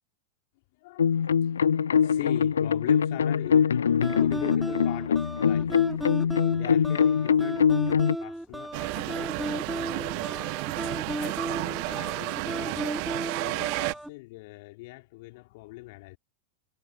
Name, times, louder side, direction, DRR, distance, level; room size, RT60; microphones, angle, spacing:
voice 1, 0.7-6.0 6.5-10.6 11.2-12.9 13.4-16.2, left 23 dB, 50° left, 3.8 m, -42 dB
sound 1, 1.0-8.2, left 7 dB, 70° left, 0.5 m, -23 dB
sound 2, 4.0-14.1, right 1 dB, ahead, 1.4 m, -35 dB
sound 3, 8.7-13.9, right 40 dB or more, 45° right, 0.5 m, -32 dB
figure-of-eight pair, 90°, 0 cm